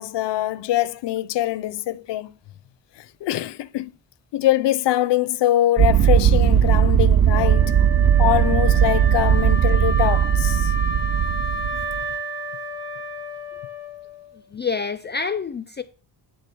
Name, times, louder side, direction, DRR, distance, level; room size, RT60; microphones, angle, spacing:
voice 1, 0.0-2.3 3.0-3.9 4.3-7.7 8.2-10.7, left 14 dB, 75° left, 0.6 m, -23 dB
sound 1, 5.8-12.0, right 9 dB, 40° right, 0.4 m, -18 dB
Wind instrument woodwind instrument, 7.3-14.3, equal, 65° right, 3.1 m, -31 dB
voice 2, 14.5-15.8, left 5 dB, 25° left, 0.3 m, -27 dB
10.0 x 3.5 x 6.8 m
wide cardioid pair, 150°, 42 cm